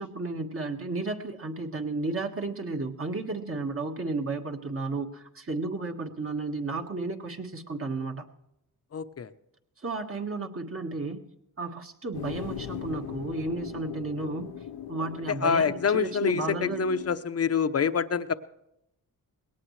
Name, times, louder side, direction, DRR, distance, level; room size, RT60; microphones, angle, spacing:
voice 1, 0.0-8.2 9.8-11.2 11.6-14.5 14.9-16.8, right 3 dB, 35° right, 2 dB, 1.7 m, -33 dB
voice 2, 8.9-9.3 15.4-18.3, left 6 dB, 40° left, 12 dB, 0.8 m, -26 dB
sound 1, 12.1-17.1, left 9 dB, 80° left, 0.9 m, -39 dB
20.5 x 18.0 x 3.3 m, 0.81 s
cardioid pair, 75°, 37 cm